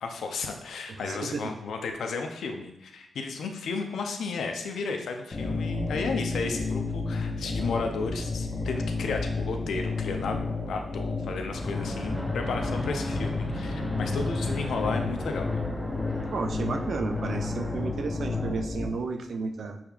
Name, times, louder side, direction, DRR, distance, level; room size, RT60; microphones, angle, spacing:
voice 1, 0.0-10.4 10.7-15.6, left 4 dB, 85° left, 4 dB, 0.5 m, -33 dB
voice 2, 0.9-1.6 16.3-19.8, right 4 dB, 70° right, 6 dB, 0.4 m, -33 dB
sound 1, 5.3-18.9, left 3 dB, 40° left, 0.7 m, -32 dB
Fixed-wing aircraft airplane, 11.5-18.6, equal, ahead, 0.7 m, -36 dB
6.3 x 3.4 x 2.4 m, 0.86 s
cardioid pair, 75°, 0 cm